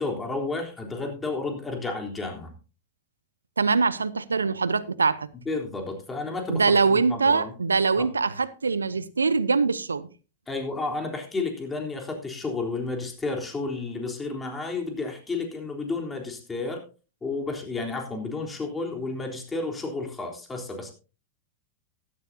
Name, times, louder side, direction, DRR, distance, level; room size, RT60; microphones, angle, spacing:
voice 1, 0.0-2.5 5.5-7.5 8.0-8.1 10.5-16.8 17.2-20.9, left 3 dB, 15° left, 3.6 m, -31 dB
voice 2, 3.6-5.3 6.5-10.1, right 4 dB, 85° right, 0.7 m, -23 dB
16.0 x 11.5 x 2.8 m
figure-of-eight pair, 95°, 0 cm